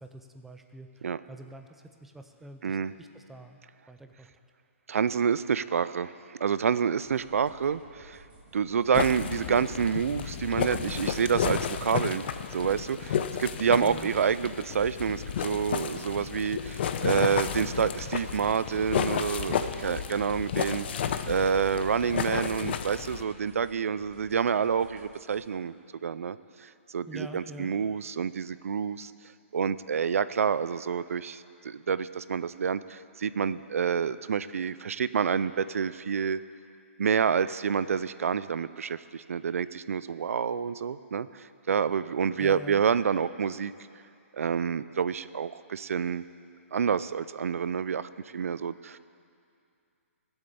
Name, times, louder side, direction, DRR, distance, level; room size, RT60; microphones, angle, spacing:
voice 1, 0.0-3.6 3.9-4.3 13.7-14.1 27.1-27.7 42.4-42.8, right 1 dB, 5° right, 5 dB, 0.5 m, -46 dB
voice 2, 2.6-2.9 4.9-8.2 8.5-12.2 12.5-25.7 26.0-29.1 29.5-36.4 37.0-43.7 44.3-46.2 46.7-49.0, right 7 dB, 80° right, 15 dB, 0.4 m, -28 dB
sound 1, 7.0-25.4, right 3 dB, 40° right, 1.8 m, -56 dB
sound 2, 8.9-23.2, left 8 dB, 50° left, 0.7 m, -32 dB
16.0 x 8.0 x 6.9 m, 2.4 s
hypercardioid pair, 155°, 7 cm